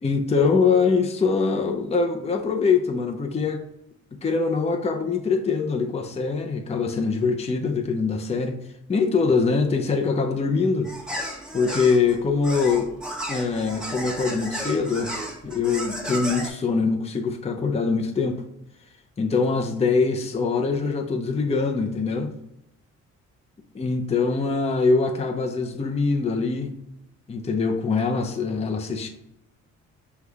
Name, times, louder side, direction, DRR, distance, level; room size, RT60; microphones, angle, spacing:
voice 1, 0.0-3.6 4.2-8.6 8.9-10.9 11.5-12.9 13.3-15.1 15.4-18.4 19.2-22.3 23.7-26.8 27.3-29.1, left 4 dB, 20° left, 3 dB, 0.6 m, -23 dB
sound 1, 10.8-16.5, equal, ahead, 1.1 m, -33 dB
6.1 x 2.3 x 3.4 m, 0.81 s
cardioid pair, 90°, 30 cm